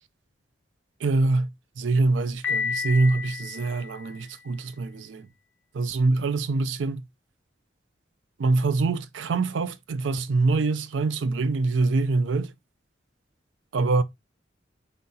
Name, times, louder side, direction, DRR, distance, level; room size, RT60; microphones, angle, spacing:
voice 1, 1.0-1.5 1.8-5.3 5.7-7.0 8.4-12.5 13.7-14.0, right 3 dB, 80° right, 0.4 m, -24 dB
Piano, 2.4-4.4, left 6 dB, 90° left, 1.0 m, -31 dB
4.6 x 2.0 x 4.0 m
head